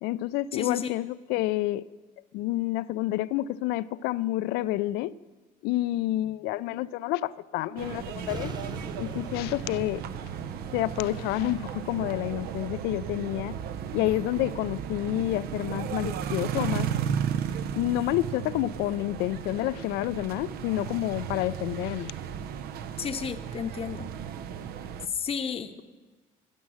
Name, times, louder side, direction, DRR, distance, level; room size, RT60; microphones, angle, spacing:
voice 1, 0.0-1.8 2.3-5.1 5.6-8.5 9.0-10.0 10.7-13.6 13.9-16.9 17.8-22.1, left 16 dB, 80° left, 18 dB, 0.4 m, -29 dB
voice 2, 0.5-0.9 23.0-24.1 25.1-25.8, left 7 dB, 35° left, 6 dB, 0.8 m, -32 dB
sound 1, 7.8-25.1, right 8 dB, 70° right, 0.7 m, -35 dB
sound 2, 8.3-15.3, right 2 dB, 25° right, 1.1 m, -44 dB
16.0 x 6.2 x 6.3 m, 1.3 s
supercardioid pair, 75°, 17 cm